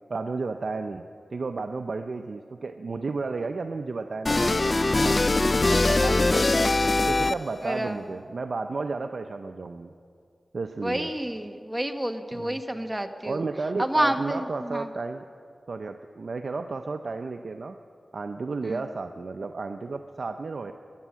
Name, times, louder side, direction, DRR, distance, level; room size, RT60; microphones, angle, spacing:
voice 1, 0.1-1.0 1.3-5.4 5.7-6.7 7.1-9.9 10.5-11.1 12.3-12.6 13.2-15.3 15.7-17.8 18.1-20.7, right 3 dB, 70° right, 7 dB, 0.5 m, -32 dB
sound 1, 4.3-7.7, left 2 dB, 45° left, 0.3 m, -22 dB
voice 2, 7.6-8.1 10.8-13.4 13.8-14.9 18.6-18.8, right 1 dB, 15° right, 7 dB, 1.2 m, -29 dB
15.5 x 11.0 x 7.4 m, 2.3 s
cardioid pair, 50°, 0 cm